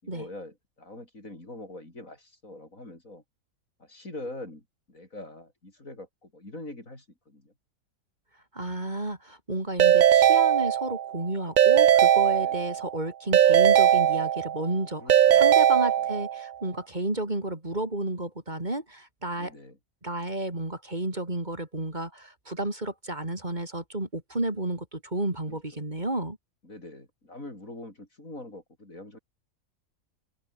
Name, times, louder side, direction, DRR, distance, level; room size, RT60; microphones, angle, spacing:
voice 1, 0.0-3.2 3.8-7.5 12.4-12.8 15.0-15.5 15.7-16.1 19.4-19.8 25.5-25.8 26.6-29.2, left 2 dB, 75° left, 7.6 m, -44 dB
voice 2, 8.5-19.5 20.0-26.4, right 1 dB, 30° right, 3.7 m, -32 dB
Keyboard (musical) / Ringtone, 9.8-11.1 11.6-12.9 13.3-14.7 15.1-16.4, right 10 dB, 70° right, 0.4 m, -20 dB
open air
omnidirectional pair, 1.4 m